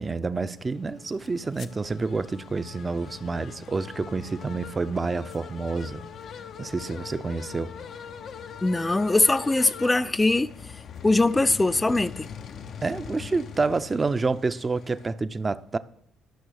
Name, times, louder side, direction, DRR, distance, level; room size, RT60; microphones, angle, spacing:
voice 1, 0.0-6.0 6.6-7.7 12.8-15.8, right 3 dB, 30° right, 0.6 m, -28 dB
sound 1, 0.6-15.1, left 7 dB, 60° left, 0.6 m, -42 dB
voice 2, 8.6-10.7 11.0-12.3, left 2 dB, 15° left, 0.5 m, -22 dB
11.5 x 5.9 x 6.4 m
supercardioid pair, 75°, 0 cm